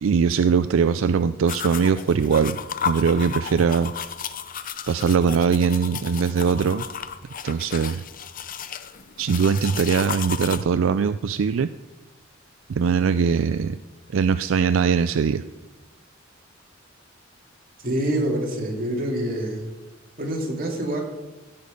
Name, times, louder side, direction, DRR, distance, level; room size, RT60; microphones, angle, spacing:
voice 1, 0.0-2.6 2.8-3.9 4.9-6.8 7.4-8.0 9.2-11.7 12.7-13.8 14.1-15.4, right 6 dB, 80° right, 12 dB, 0.4 m, -21 dB
sound 1, 1.5-10.6, left 7 dB, 45° left, 0.6 m, -33 dB
voice 2, 17.8-19.7 20.2-21.0, right 1 dB, 45° right, -1 dB, 2.8 m, -26 dB
16.5 x 7.0 x 5.2 m, 1.2 s
head